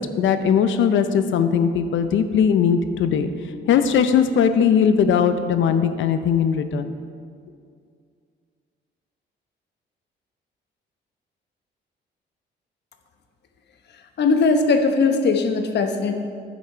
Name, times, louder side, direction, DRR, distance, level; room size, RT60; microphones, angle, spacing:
voice 1, 0.0-3.3 3.7-6.9, left 7 dB, 75° left, 10 dB, 0.7 m, -19 dB
voice 2, 14.2-16.1, left 4 dB, 60° left, 6 dB, 1.0 m, -19 dB
10.5 x 7.3 x 4.6 m, 2.2 s
cardioid pair, 90°, 20 cm